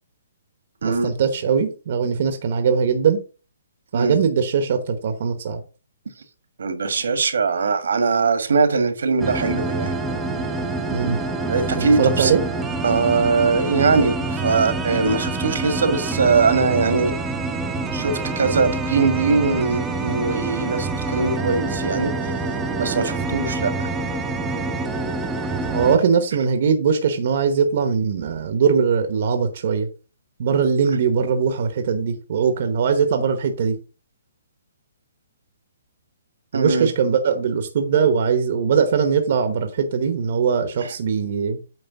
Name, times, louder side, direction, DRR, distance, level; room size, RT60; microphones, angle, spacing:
voice 1, 0.8-3.2 3.9-5.6 10.9-11.2 11.8-12.4 25.7-29.9 30.4-33.8 36.5-41.6, right 6 dB, 45° right, 1.0 m, -21 dB
voice 2, 6.6-9.9 11.5-12.3 12.8-17.1 17.9-22.3 22.8-23.9 36.5-36.9 40.8-40.9, right 4 dB, 80° right, 1.6 m, -21 dB
sound 1, 9.2-26.0, right 3 dB, 10° right, 0.8 m, -26 dB
8.9 x 3.3 x 5.8 m
hypercardioid pair, 165°, 0 cm